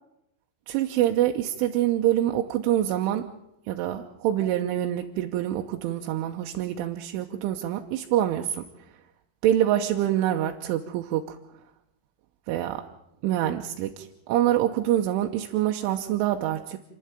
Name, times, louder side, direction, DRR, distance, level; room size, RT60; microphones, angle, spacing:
voice 1, 0.7-3.3 3.7-8.7 9.4-11.4 12.5-12.9 13.2-16.8, right 12 dB, 80° right, 4 dB, 3.4 m, -25 dB
29.0 x 11.5 x 9.0 m, 0.84 s
omnidirectional pair, 5.6 m